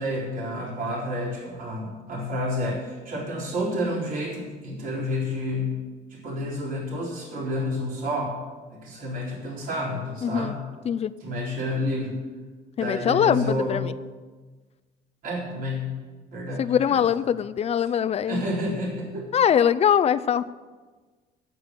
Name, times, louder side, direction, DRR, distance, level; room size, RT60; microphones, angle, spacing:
voice 1, 0.0-5.7 6.1-8.3 8.7-10.6 11.2-12.2 12.8-13.8 15.2-16.0 16.3-17.0 18.3-19.3, left 1 dB, 55° right, -4 dB, 4.0 m, -30 dB
voice 2, 10.2-10.5 10.8-11.1 12.8-13.9 16.6-18.4 19.3-20.5, left 8 dB, 40° left, 14 dB, 0.5 m, -22 dB
9.0 x 8.4 x 7.8 m, 1.4 s
cardioid pair, 110°, 17 cm